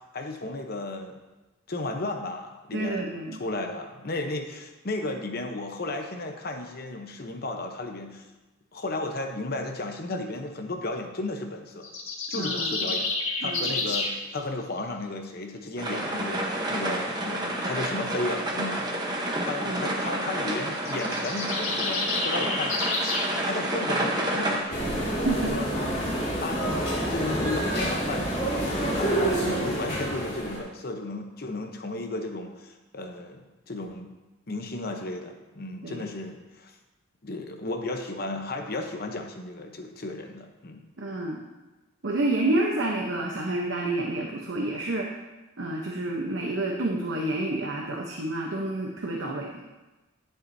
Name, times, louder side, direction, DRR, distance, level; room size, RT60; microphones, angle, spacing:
voice 1, 0.1-1.2 1.7-3.1 3.4-8.3 8.7-11.9 12.3-13.1 13.4-22.7 23.4-24.9 25.3-25.7 26.4-34.1 34.5-36.7 37.2-40.8, left 2 dB, 50° left, 4 dB, 0.9 m, -34 dB
voice 2, 2.7-3.4 12.3-12.9 13.4-13.7 19.6-20.2 25.2-25.5 26.5-26.7 29.2-29.8 35.8-36.0 41.0-41.4 42.0-45.1 45.6-49.5, right 2 dB, 70° right, -1 dB, 0.9 m, -29 dB
sound 1, 11.8-14.1 20.8-23.3, left 3 dB, 85° left, 1.8 m, -29 dB
sound 2, 15.8-24.6, right 1 dB, 20° right, 1.0 m, -29 dB
sound 3, 24.7-30.6, right 1 dB, 35° left, 2.4 m, -28 dB
11.0 x 7.9 x 2.7 m, 1.1 s
head